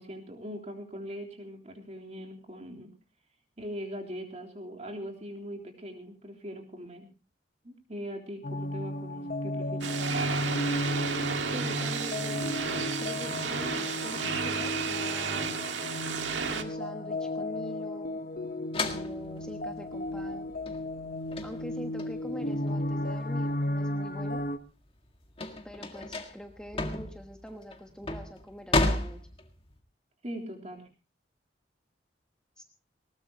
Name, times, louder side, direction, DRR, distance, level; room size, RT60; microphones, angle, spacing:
voice 1, 0.0-2.9 3.6-7.1 7.6-10.1 30.2-30.9, equal, 40° right, 2 dB, 3.6 m, -41 dB
sound 1, 8.4-24.6, left 1 dB, 50° left, 1.1 m, -34 dB
sound 2, 9.8-16.6, right 5 dB, 85° right, 1.8 m, -32 dB
voice 2, 11.5-12.5 13.0-15.6 16.5-18.2 18.8-20.5 21.4-24.4 25.6-29.2 32.6-32.7, equal, 5° left, 4 dB, 1.3 m, -44 dB
sound 3, 18.7-23.8 24.2-29.8, left 2 dB, 30° left, 1.9 m, -33 dB
20.0 x 19.0 x 2.9 m, 0.31 s
head